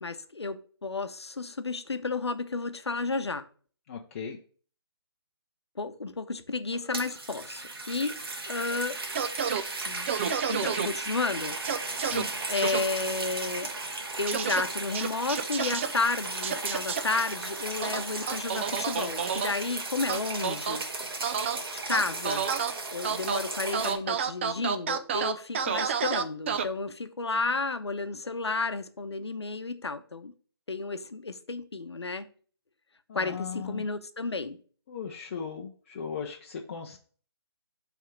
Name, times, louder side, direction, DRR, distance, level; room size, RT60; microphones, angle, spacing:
voice 1, 0.0-3.4 5.8-9.0 9.9-10.1 10.5-11.6 12.5-13.8 14.2-20.8 21.7-22.5 22.9-30.3 30.7-32.3 33.1-34.6, left 3 dB, 80° left, 0.8 m, -32 dB
voice 2, 3.9-4.4 12.0-12.3 33.1-33.9 34.9-37.0, left 6 dB, 30° left, 0.6 m, -37 dB
sound 1, 6.7-23.9, right 3 dB, 60° right, 1.5 m, -36 dB
sound 2, 9.2-9.6 10.1-10.9 11.7-12.2 12.6-12.8 14.3-14.6 15.0-15.9 16.4-17.0 17.8-19.5 20.1-20.8 21.2-21.6 21.9-22.7 23.0-23.4 23.7-26.6, right 7 dB, 25° right, 0.4 m, -29 dB
7.4 x 3.5 x 4.7 m
figure-of-eight pair, 145°, 14 cm